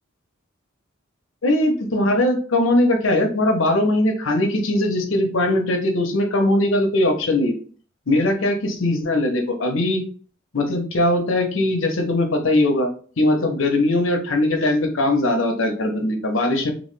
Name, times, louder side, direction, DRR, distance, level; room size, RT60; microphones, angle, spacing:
voice 1, 1.4-7.5 8.1-10.0 10.5-12.9 13.2-16.7, left 1 dB, 90° left, 3 dB, 0.8 m, -20 dB
3.0 x 2.5 x 3.2 m, 0.43 s
head